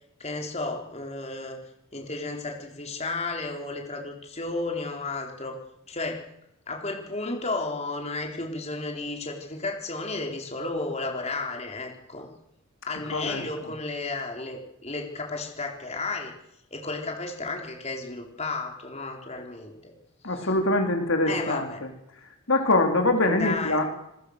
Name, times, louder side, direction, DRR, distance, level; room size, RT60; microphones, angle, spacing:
voice 1, 0.2-1.6 1.9-5.6 5.9-6.2 6.7-12.3 12.9-16.3 16.7-19.9 20.3-20.5 21.2-21.8 23.2-23.8, left 3 dB, 30° left, 1 dB, 4.3 m, -33 dB
voice 2, 13.1-13.4 20.2-21.7 22.5-23.9, left 2 dB, 70° left, 4 dB, 3.6 m, -23 dB
28.0 x 21.0 x 6.7 m, 0.78 s
head